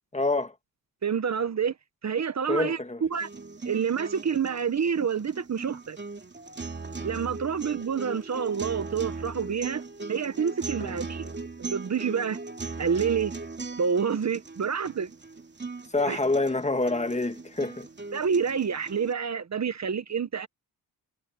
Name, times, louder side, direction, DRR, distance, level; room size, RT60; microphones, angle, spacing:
voice 1, 0.1-0.5 2.5-3.0 10.8-11.0 15.9-17.9, left 2 dB, 20° left, 1.5 m, -27 dB
voice 2, 1.0-1.7 2.0-3.3 3.6-6.0 7.0-9.8 10.1-11.3 11.6-12.4 12.8-13.3 13.8-15.1 16.1-16.2 18.1-20.5, right 6 dB, 45° right, 1.2 m, -28 dB
sound 1, 3.1-19.1, right 3 dB, 30° right, 2.8 m, -39 dB
cardioid pair, 90°, 37 cm